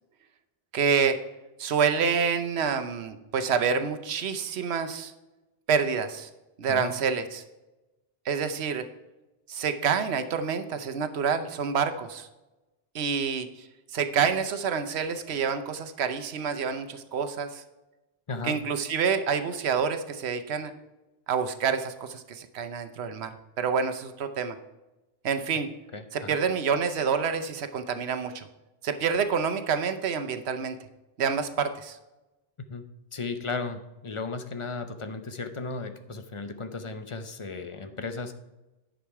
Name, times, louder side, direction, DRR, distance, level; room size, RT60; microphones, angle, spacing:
voice 1, 0.7-1.2 1.6-5.1 5.7-6.3 6.6-7.4 8.2-8.9 9.5-12.3 12.9-17.6 18.4-20.7 21.3-23.3 23.6-24.6 25.2-25.7 26.1-28.5 28.8-30.8 31.2-32.0, right 6 dB, 90° right, 8 dB, 1.0 m, -27 dB
voice 2, 25.9-26.4 32.7-32.8 33.1-38.3, left 3 dB, 35° left, 8 dB, 0.7 m, -35 dB
10.0 x 6.3 x 4.7 m, 1.0 s
omnidirectional pair, 1.1 m